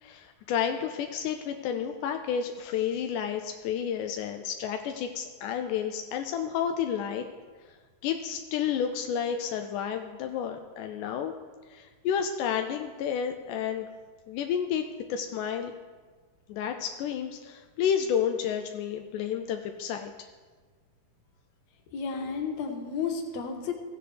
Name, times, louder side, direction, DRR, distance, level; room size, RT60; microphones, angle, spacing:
voice 1, 0.0-7.3 8.0-11.3 11.7-13.9 14.3-15.7 16.5-20.1, left 8 dB, 85° left, 5 dB, 1.8 m, -31 dB
voice 2, 21.9-23.7, left 5 dB, 65° left, 3 dB, 1.9 m, -32 dB
16.0 x 8.0 x 3.3 m, 1.4 s
omnidirectional pair, 4.1 m